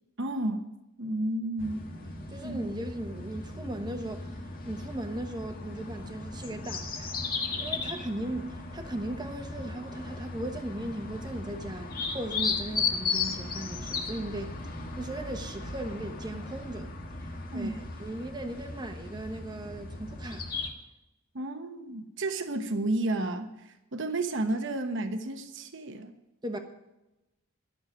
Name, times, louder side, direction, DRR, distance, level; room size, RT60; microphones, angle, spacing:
voice 1, 0.2-0.7 1.0-1.8 2.4-2.6 17.5-17.8 21.3-23.5 23.9-26.1, right 2 dB, 60° right, 7 dB, 1.1 m, -31 dB
sound 1, 1.6-20.7, left 4 dB, 45° left, 1.7 m, -36 dB
voice 2, 2.3-7.2 7.6-11.9 12.1-16.9 17.2-17.3 17.5-20.5 26.4-26.6, right 1 dB, 20° right, 6 dB, 1.2 m, -37 dB
12.0 x 6.7 x 8.8 m, 0.94 s
head